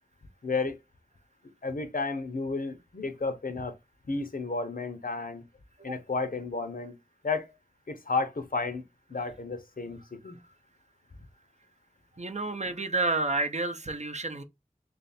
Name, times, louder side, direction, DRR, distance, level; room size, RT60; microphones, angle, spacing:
voice 1, 0.4-0.8 1.6-3.8 4.1-5.4 5.8-6.9 7.2-7.5 7.9-8.8 9.1-10.4, left 3 dB, 70° left, 0.7 m, -32 dB
voice 2, 12.2-14.4, right 2 dB, 50° right, 0.6 m, -30 dB
3.2 x 2.5 x 4.1 m
wide cardioid pair, 40°, 15 cm